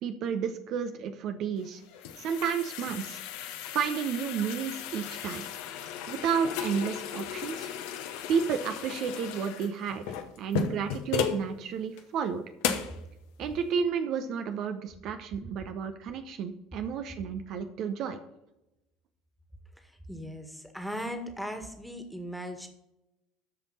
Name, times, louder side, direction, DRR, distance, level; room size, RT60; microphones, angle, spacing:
voice 1, 0.0-1.8 2.2-3.2 3.7-5.4 6.1-7.7 8.3-10.0 10.4-12.4 13.4-18.2, right 7 dB, 50° right, 8 dB, 0.8 m, -31 dB
sound 1, 1.6-11.5 12.0-12.1 12.6-13.0, left 9 dB, 65° left, 1.0 m, -35 dB
voice 2, 19.8-22.7, equal, ahead, 6 dB, 1.8 m, -38 dB
13.5 x 5.2 x 4.2 m, 0.90 s
figure-of-eight pair, 65°, 0 cm